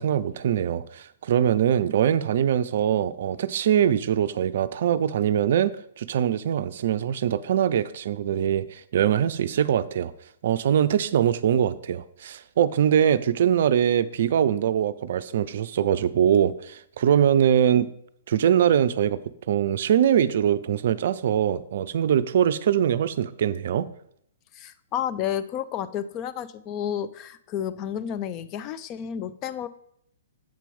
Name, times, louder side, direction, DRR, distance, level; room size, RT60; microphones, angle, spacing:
voice 1, 0.0-10.1 10.4-17.9 18.3-19.2 19.5-23.9, right 9 dB, 55° right, 14 dB, 0.4 m, -22 dB
voice 2, 24.5-29.7, left 9 dB, 30° left, 13 dB, 0.4 m, -31 dB
7.6 x 4.5 x 5.3 m, 0.70 s
figure-of-eight pair, 120°, 0 cm